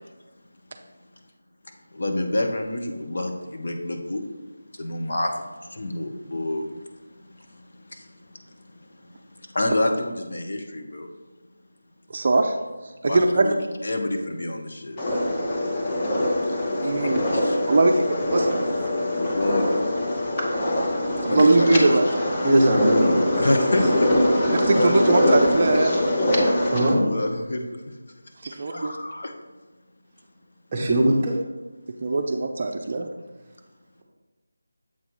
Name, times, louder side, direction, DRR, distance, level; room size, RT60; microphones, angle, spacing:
voice 1, 2.0-4.2 4.8-5.3 5.8-6.6 9.5-11.1 13.1-13.5 13.8-15.0 17.3-17.6 19.2-19.8 21.3-21.8 23.3-24.1 24.7-25.0 26.9-27.6 28.7-29.3, left 1 dB, 50° left, 3 dB, 0.9 m, -27 dB
voice 2, 12.1-12.6 13.0-13.4 16.8-17.2 17.7-18.5 21.2-22.2 24.5-26.0 28.4-28.9 32.0-33.1, right 2 dB, 35° right, 4 dB, 0.5 m, -21 dB
sound 1, 15.0-26.9, left 1 dB, 20° left, 0.8 m, -23 dB
voice 3, 22.4-23.1 26.7-27.0 30.7-31.3, right 1 dB, 20° right, -2 dB, 0.9 m, -20 dB
7.3 x 4.0 x 4.7 m, 1.2 s
figure-of-eight pair, 170°, 0 cm